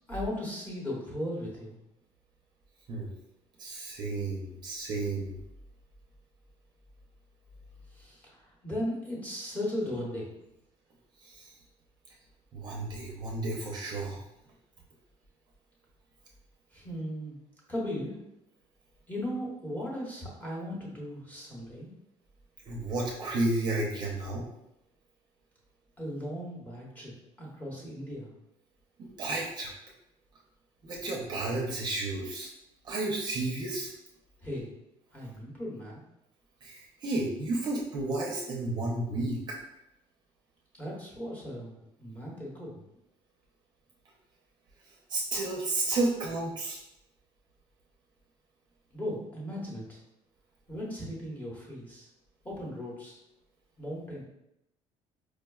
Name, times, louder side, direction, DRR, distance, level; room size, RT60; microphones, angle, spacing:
voice 1, 0.1-1.8 7.9-10.3 16.7-17.4 17.7-18.2 19.1-21.9 26.0-27.1 27.4-28.3 34.4-34.7 35.1-36.0 40.8-42.8 48.9-50.0 50.7-52.1 52.4-53.2 53.8-54.2, equal, 15° left, -4 dB, 0.9 m, -37 dB
voice 2, 3.6-5.3 11.2-11.5 12.5-14.2 22.7-24.5 29.0-29.7 30.8-32.5 32.8-33.9 36.6-39.6 44.9-46.8, right 2 dB, 40° right, -2 dB, 0.5 m, -32 dB
4.7 x 2.1 x 2.2 m, 0.84 s
cardioid pair, 150°, 12 cm